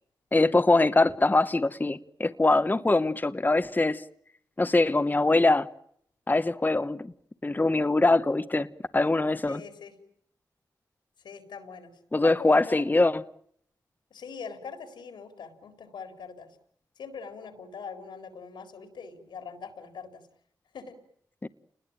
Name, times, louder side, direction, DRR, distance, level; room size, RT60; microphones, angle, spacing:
voice 1, 0.3-4.0 4.6-5.7 6.3-7.1 7.4-8.7 8.9-9.6 12.1-13.2 21.4-21.5, left 2 dB, 25° left, 1.0 m, -23 dB
voice 2, 9.5-10.0 11.2-12.8 14.1-16.5 17.0-20.2 20.7-21.0, left 5 dB, 90° left, 4.0 m, -42 dB
29.5 x 20.5 x 8.9 m
cardioid pair, 50°, 8 cm